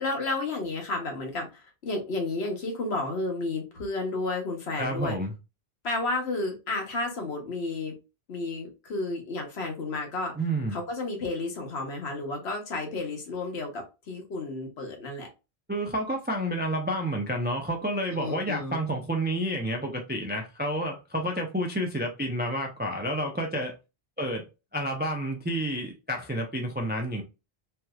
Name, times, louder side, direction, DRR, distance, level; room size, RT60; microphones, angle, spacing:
voice 1, 0.0-5.2 5.8-7.9 8.3-10.3 10.7-15.3 18.2-18.8, left 2 dB, 85° left, 1.3 m, -32 dB
voice 2, 4.8-5.3 10.4-10.8 15.7-23.7 24.2-24.4 24.7-27.2, right 1 dB, 15° right, 0.4 m, -29 dB
3.2 x 2.9 x 2.3 m
omnidirectional pair, 1.1 m